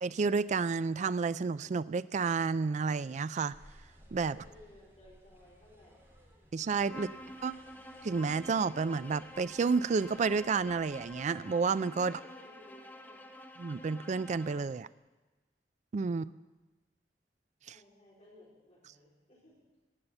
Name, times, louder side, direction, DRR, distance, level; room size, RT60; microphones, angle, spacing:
voice 1, 0.0-3.6 4.1-4.4 6.5-7.1 7.4-7.5 8.0-12.1 13.6-14.9 15.9-16.2, right 5 dB, 45° right, 16 dB, 0.4 m, -30 dB
sound 1, 3.5-11.2, equal, 15° right, 3.3 m, -60 dB
voice 2, 4.2-6.2 6.9-7.4 12.0-13.2 16.1-16.4 17.7-19.6, left 1 dB, 40° left, -7 dB, 4.0 m, -59 dB
Bowed string instrument, 6.8-14.7, left 1 dB, 10° left, 0.9 m, -49 dB
16.5 x 5.7 x 9.0 m, 1.2 s
head